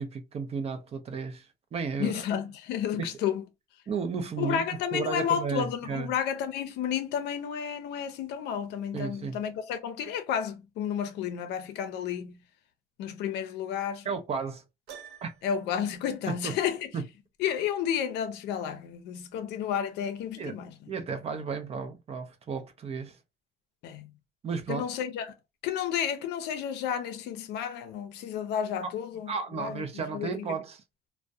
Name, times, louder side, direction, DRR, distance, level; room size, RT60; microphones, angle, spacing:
voice 1, 0.0-2.2 3.0-3.2 3.9-6.1 8.9-9.4 14.0-14.6 15.2-15.3 16.3-16.5 16.9-17.1 20.4-20.6 20.9-23.2 24.4-24.9 28.8-28.9 29.3-30.8, right 5 dB, 35° right, 0.5 m, -33 dB
voice 2, 2.0-3.4 4.4-12.4 13.0-14.0 15.4-16.8 17.4-20.7 23.8-24.1 24.7-25.3 25.6-29.3 29.6-29.8 30.1-30.4, left 8 dB, 85° left, 0.5 m, -31 dB
Piano, 14.9-15.7, right 8 dB, 75° right, 0.6 m, -47 dB
2.3 x 2.1 x 2.6 m
cardioid pair, 110°, 17 cm